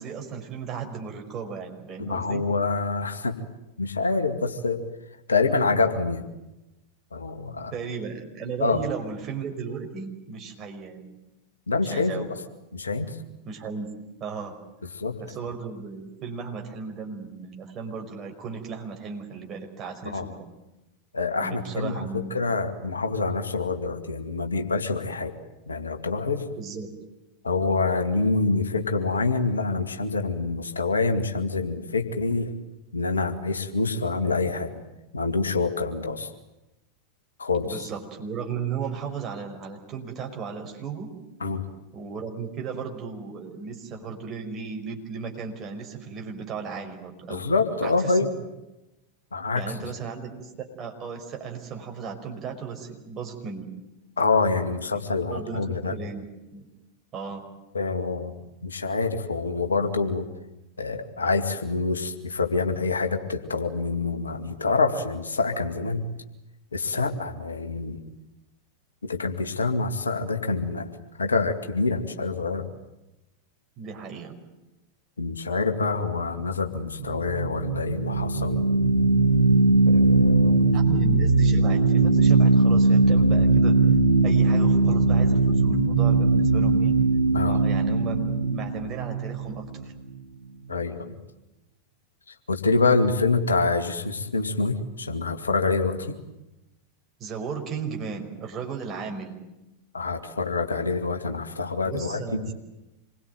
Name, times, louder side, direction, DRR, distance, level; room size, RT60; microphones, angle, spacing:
voice 1, 0.0-2.4 7.7-11.2 11.9-12.3 13.5-13.9 14.2-14.6 15.2-20.3 21.4-22.3 26.6-26.9 37.6-41.1 41.9-47.5 47.8-48.3 49.5-53.7 55.0-56.7 57.1-57.4 73.8-74.3 80.7-83.7 84.2-87.0 87.4-89.9 97.2-99.4 101.8-102.5, right 6 dB, 30° right, 2 dB, 5.4 m, -35 dB
voice 2, 2.0-3.3 3.8-4.8 5.3-6.2 7.1-7.7 8.6-8.9 11.7-12.4 12.7-13.2 14.9-15.2 20.0-20.3 21.1-25.4 25.7-26.5 27.4-32.5 32.9-34.8 35.1-36.3 37.4-37.9 41.4-41.7 47.3-48.3 49.3-49.9 54.2-56.0 57.7-60.3 60.8-66.0 66.7-68.0 69.0-72.6 75.2-78.8 79.9-80.8 87.3-87.6 90.7-91.2 92.5-96.2 99.9-102.5, left 3 dB, 75° left, 6 dB, 2.3 m, -26 dB
sound 1, 76.9-90.1, right 3 dB, 80° right, 1.2 m, -20 dB
27.0 x 22.0 x 9.3 m, 0.96 s
figure-of-eight pair, 90°, 0 cm